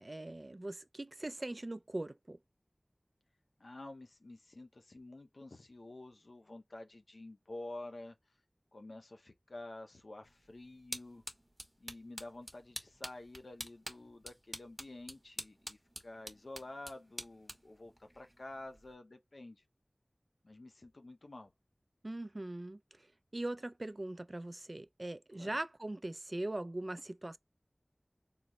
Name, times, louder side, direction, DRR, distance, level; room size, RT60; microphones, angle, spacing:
voice 1, 0.0-2.4 22.0-22.8 23.3-27.4, right 1 dB, 50° right, 0.3 m, -41 dB
voice 2, 3.6-8.2 8.7-11.2 11.8-19.6 20.4-21.5 25.3-25.6, left 2 dB, 85° left, 0.6 m, -50 dB
sound 1, 10.2-18.9, equal, 5° right, 0.9 m, -49 dB
3.9 x 2.0 x 2.9 m
wide cardioid pair, 45°, 0 cm